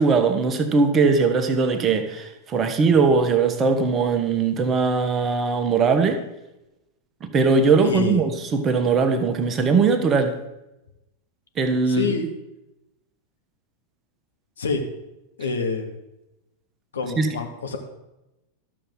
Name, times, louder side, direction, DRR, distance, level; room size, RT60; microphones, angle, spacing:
voice 1, 0.0-6.2 7.2-10.4 11.6-12.1 17.2-17.3, right 4 dB, 25° right, 7 dB, 1.0 m, -20 dB
voice 2, 7.8-8.2 11.9-12.3 14.6-14.8 15.4-15.9 16.9-17.8, left 4 dB, 70° left, 4 dB, 1.2 m, -26 dB
12.5 x 6.9 x 3.9 m, 0.94 s
figure-of-eight pair, 90°, 0 cm